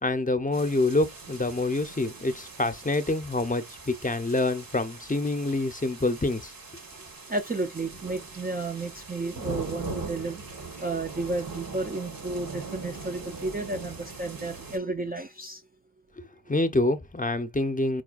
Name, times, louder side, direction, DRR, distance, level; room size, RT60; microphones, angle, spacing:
voice 1, 0.0-6.5 16.5-18.0, left 2 dB, 25° left, 0.6 m, -26 dB
sound 1, 0.5-14.8, right 3 dB, 70° right, 1.0 m, -41 dB
voice 2, 7.3-15.6, right 2 dB, 25° right, 0.4 m, -32 dB
4.8 x 2.2 x 2.3 m
wide cardioid pair, 50°, 36 cm